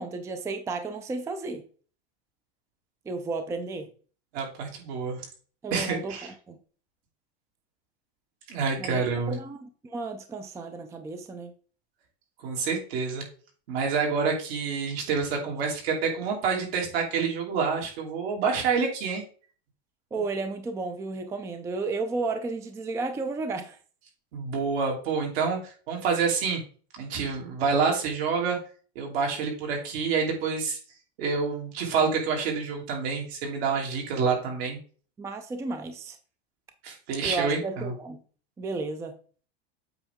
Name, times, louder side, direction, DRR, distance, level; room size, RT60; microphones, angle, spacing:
voice 1, 0.0-1.6 3.1-3.9 5.6-6.5 8.8-11.5 20.1-23.8 35.2-36.2 37.2-38.2 38.6-39.1, right 3 dB, 10° right, 7 dB, 0.4 m, -33 dB
voice 2, 4.3-5.2 5.7-6.3 8.5-9.4 12.4-13.2 13.7-19.2 24.3-26.6 27.0-28.6 28.9-30.8 31.2-34.8 36.8-37.9, right 5 dB, 70° right, 0 dB, 2.8 m, -27 dB
8.0 x 4.5 x 3.6 m, 0.41 s
supercardioid pair, 145°, 32 cm